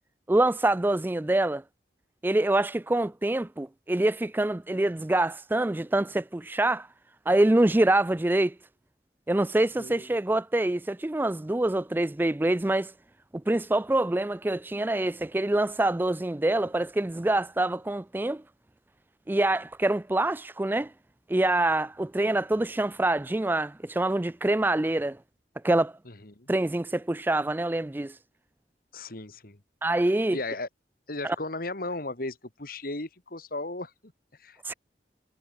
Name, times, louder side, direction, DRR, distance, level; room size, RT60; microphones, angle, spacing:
voice 1, 0.3-1.6 2.2-6.9 7.3-8.5 9.3-12.9 13.5-18.4 19.3-20.9 21.3-25.2 25.6-25.9 26.5-28.2 29.8-30.4 31.2-31.4 34.6-34.7, right 1 dB, 10° right, 0.4 m, -25 dB
voice 2, 26.1-26.5 28.9-29.6 30.3-30.7 31.1-34.1 34.4-34.7, left 2 dB, 55° left, 2.4 m, -36 dB
head